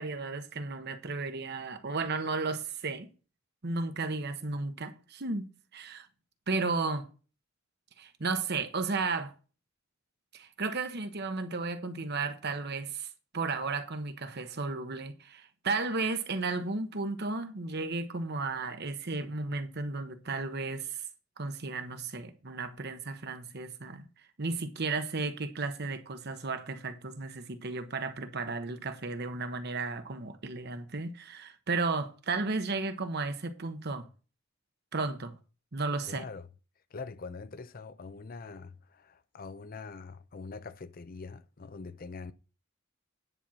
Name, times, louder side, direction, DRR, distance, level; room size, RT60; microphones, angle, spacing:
voice 1, 0.0-3.1 3.6-5.4 5.7-6.1 6.5-7.1 8.0-9.3 10.3-13.1 13.3-21.0 21.4-24.1 24.4-34.1 34.9-35.4 35.7-36.3, right 3 dB, 55° right, 1.1 m, -34 dB
voice 2, 36.1-36.5 36.9-42.3, left 4 dB, 45° left, 0.6 m, -44 dB
10.0 x 4.4 x 6.3 m
head